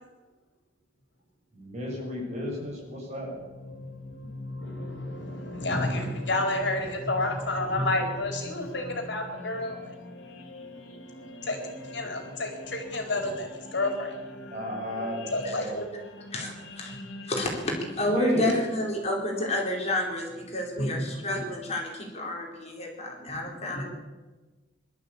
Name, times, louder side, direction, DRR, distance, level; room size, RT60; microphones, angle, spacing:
voice 1, 1.5-3.4 14.5-15.8 18.0-18.5, equal, 35° right, -2 dB, 7.4 m, -33 dB
sound 1, 2.2-18.9, left 1 dB, 80° left, 3.3 m, -42 dB
voice 2, 4.5-9.9 11.4-14.4 15.3-15.8 20.8-21.4 23.3-23.8, left 2 dB, 65° left, 3 dB, 4.2 m, -30 dB
voice 3, 16.3-16.9 17.3-23.9, left 1 dB, 35° left, 0 dB, 4.5 m, -30 dB
23.0 x 13.0 x 8.6 m, 1.2 s
head